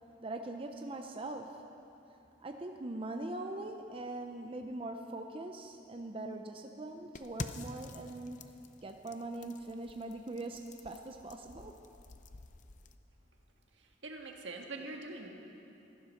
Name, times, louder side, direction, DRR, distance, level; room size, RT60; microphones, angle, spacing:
voice 1, 0.2-1.7 2.4-8.6 8.8-11.7, right 2 dB, 30° right, 4 dB, 0.6 m, -42 dB
sound 1, 7.1-12.9, left 3 dB, 45° left, 0.6 m, -48 dB
voice 2, 13.8-15.3, right 3 dB, 80° right, 2 dB, 1.7 m, -44 dB
15.0 x 12.0 x 6.4 m, 2.8 s
head